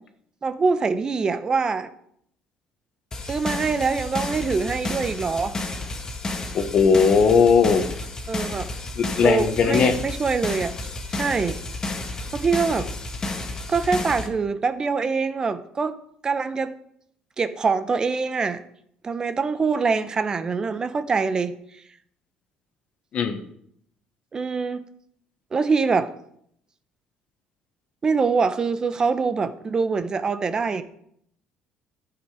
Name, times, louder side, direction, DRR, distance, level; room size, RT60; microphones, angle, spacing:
voice 1, 0.4-1.9 3.3-5.6 8.3-8.7 9.2-10.7 11.1-11.6 12.3-12.9 13.7-16.0 16.2-16.7 17.4-18.6 19.0-21.5 24.3-24.8 25.5-26.1 28.0-30.8, right 4 dB, 30° right, 12 dB, 0.8 m, -24 dB
sound 1, 3.1-14.3, left 2 dB, 25° left, 1.7 m, -31 dB
voice 2, 6.5-7.8 9.0-9.9 23.1-23.4, left 6 dB, 50° left, 8 dB, 1.4 m, -18 dB
12.0 x 8.0 x 5.0 m, 0.69 s
cardioid pair, 110°, 3 cm